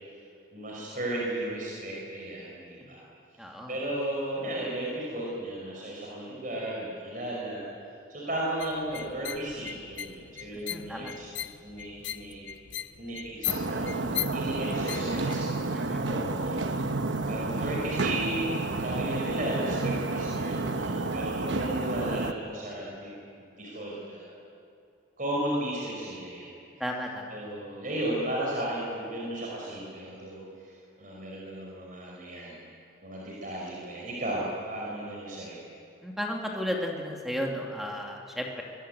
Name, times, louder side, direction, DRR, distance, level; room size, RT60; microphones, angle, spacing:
voice 1, 0.5-3.0 3.7-7.7 8.1-11.3 11.6-12.4 13.0-16.9 17.2-23.2 23.6-24.3 25.2-26.5 27.3-32.6 33.0-35.6, right 1 dB, 45° right, -4 dB, 5.5 m, -35 dB
voice 2, 3.4-3.8 10.7-11.1 15.7-16.0 26.8-27.3 36.0-38.6, equal, ahead, 0 dB, 2.6 m, -34 dB
sound 1, 8.6-15.3, left 12 dB, 65° left, 0.7 m, -38 dB
sound 2, 13.5-22.3, right 2 dB, 70° right, 1.1 m, -30 dB
23.5 x 22.0 x 9.1 m, 2.5 s
head